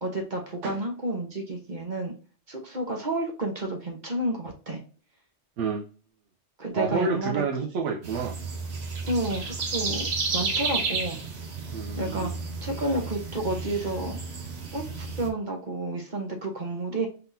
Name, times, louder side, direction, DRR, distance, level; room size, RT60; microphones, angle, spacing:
voice 1, 0.0-2.1 2.5-4.8 6.6-7.4 9.0-11.2 12.0-12.3 12.6-14.2 14.7-17.1, right 1 dB, 40° right, 2 dB, 1.1 m, -30 dB
voice 2, 5.6-5.9 6.7-8.3 11.7-12.3, right 5 dB, 85° right, 0 dB, 1.0 m, -29 dB
sound 1, 8.0-15.3, right 4 dB, 60° right, 1.2 m, -32 dB
4.1 x 3.7 x 2.6 m, 0.37 s
omnidirectional pair, 1.2 m